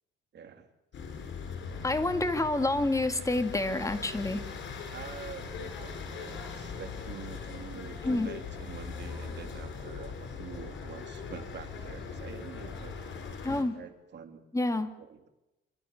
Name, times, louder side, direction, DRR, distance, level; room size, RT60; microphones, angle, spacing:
voice 1, 0.3-0.7 1.7-1.8 3.2-3.3 4.9-12.9 13.7-14.4 15.0-15.3, right 7 dB, 60° right, 7 dB, 3.0 m, -46 dB
sound 1, 0.9-13.6, left 5 dB, 70° left, 6.6 m, -40 dB
voice 2, 1.8-4.4 8.0-8.3 13.4-13.8 14.5-14.9, left 2 dB, 15° left, 8 dB, 2.1 m, -28 dB
27.0 x 13.5 x 8.6 m, 0.99 s
cardioid pair, 90°, 20 cm